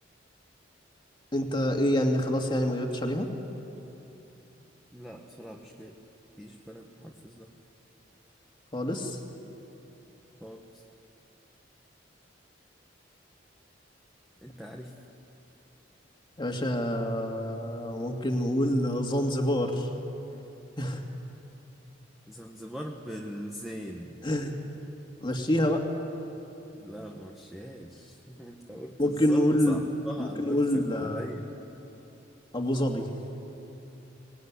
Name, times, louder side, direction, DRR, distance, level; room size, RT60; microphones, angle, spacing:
voice 1, 1.3-3.3 8.7-9.2 16.4-19.9 20.8-21.0 24.2-24.5 25.2-25.9 29.0-29.9 30.2-31.3 32.5-33.1, left 1 dB, 25° left, 3 dB, 2.3 m, -27 dB
voice 2, 4.9-6.0 6.4-7.5 10.4-10.8 14.4-14.9 22.3-24.2 26.7-31.5, equal, ahead, 0 dB, 1.3 m, -41 dB
24.0 x 19.0 x 9.8 m, 3.0 s
head